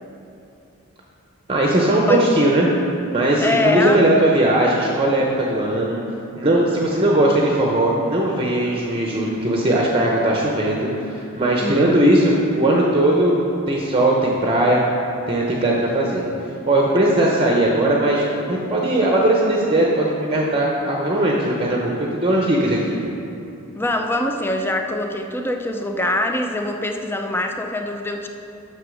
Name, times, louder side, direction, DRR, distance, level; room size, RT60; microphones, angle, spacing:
voice 1, 1.5-2.7 3.1-6.0 6.4-13.4 13.7-14.8 15.3-16.3 16.7-21.9 22.2-23.0, right 1 dB, 25° right, -2 dB, 0.8 m, -19 dB
voice 2, 3.4-4.1 11.6-12.0 23.7-28.3, left 2 dB, 10° left, 4 dB, 0.5 m, -23 dB
8.0 x 6.1 x 6.3 m, 2.8 s
head